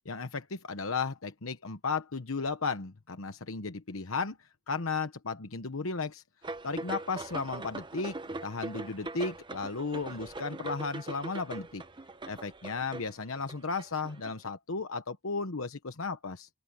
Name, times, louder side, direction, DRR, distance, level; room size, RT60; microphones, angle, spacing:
voice 1, 0.0-4.4 4.7-6.2 6.6-8.1 8.4-11.8 12.3-16.5, left 4 dB, 70° left, 1.1 m, -34 dB
sound 1, 6.4-14.5, right 2 dB, 20° right, 1.0 m, -41 dB
open air
head